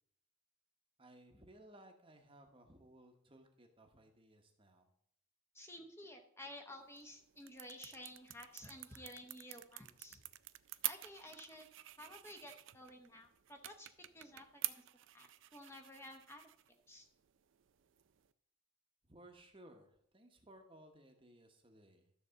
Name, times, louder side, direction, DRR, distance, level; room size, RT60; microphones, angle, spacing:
voice 1, 1.0-4.9 19.0-22.0, right 1 dB, 25° right, 4 dB, 1.0 m, -60 dB
voice 2, 5.5-10.2 10.8-11.7 12.0-13.9 14.1-14.8 15.1-16.4 16.9-17.1, left 1 dB, 10° left, 4 dB, 0.9 m, -53 dB
sound 1, 6.8-18.3, right 16 dB, 65° right, 0.4 m, -49 dB
12.5 x 4.1 x 6.8 m, 0.69 s
head